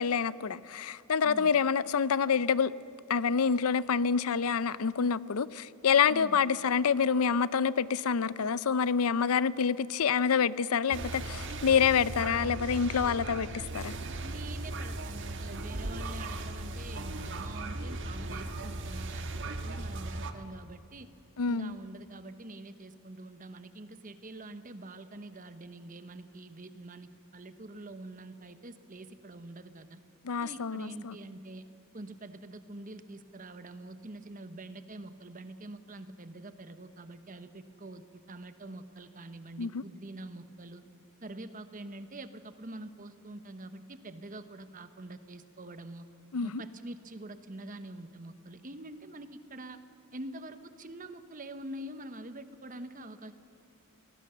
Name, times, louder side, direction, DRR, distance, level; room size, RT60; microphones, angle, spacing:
voice 1, 0.0-2.7 3.1-13.9 21.4-21.8 30.2-31.2 39.6-39.8 46.3-46.6, left 6 dB, 80° left, 0.5 m, -27 dB
voice 2, 1.2-1.6 6.1-6.4 14.2-21.1 21.5-30.0 30.4-31.7 31.9-40.8 41.2-46.1 46.4-49.8 50.1-53.3, right 2 dB, 40° right, 1.1 m, -45 dB
sound 1, 10.9-20.3, right 2 dB, 55° right, 1.5 m, -37 dB
25.5 x 19.0 x 7.0 m
head